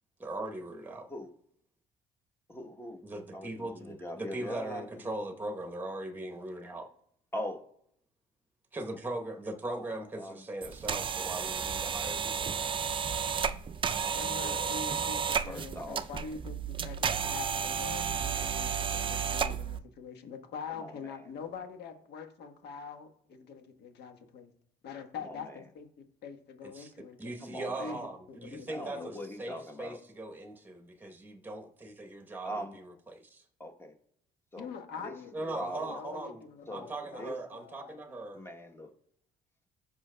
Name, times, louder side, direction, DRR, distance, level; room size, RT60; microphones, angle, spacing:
voice 1, 0.2-1.1 3.0-6.9 8.7-12.5 26.6-26.9 27.2-33.4 35.3-36.4 36.7-38.4, right 2 dB, 10° right, 4 dB, 1.0 m, -40 dB
voice 2, 2.5-3.0 3.3-4.9 7.3-7.6 9.7-10.4 14.0-14.7 15.5-16.0 20.8-21.3 25.2-25.6 27.4-28.0 28.7-30.0 32.4-32.8 33.6-33.9 34.5-34.7 35.0-35.1 35.5-36.0 36.7-36.9 37.2-37.3 38.3-38.9, equal, 15° left, 4 dB, 1.0 m, -41 dB
sound 1, 10.6-19.8, right 7 dB, 30° right, 0.4 m, -32 dB
voice 3, 14.1-24.5 24.8-27.4 27.8-29.1 34.6-38.2, left 6 dB, 75° left, 6 dB, 1.3 m, -44 dB
15.5 x 5.7 x 2.2 m, 0.70 s
cardioid pair, 110°, 17 cm